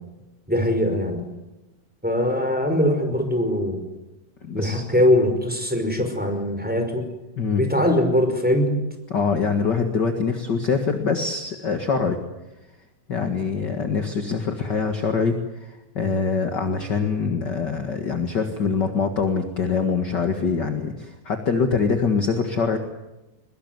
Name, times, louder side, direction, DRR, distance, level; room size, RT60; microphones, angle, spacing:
voice 1, 0.5-1.2 2.0-3.8 4.5-7.1 7.6-8.8, left 1 dB, ahead, 5 dB, 5.0 m, -21 dB
voice 2, 4.4-4.9 7.4-7.6 9.1-12.2 13.1-22.8, left 5 dB, 40° left, 6 dB, 1.6 m, -24 dB
23.5 x 21.5 x 9.5 m, 0.99 s
omnidirectional pair, 4.4 m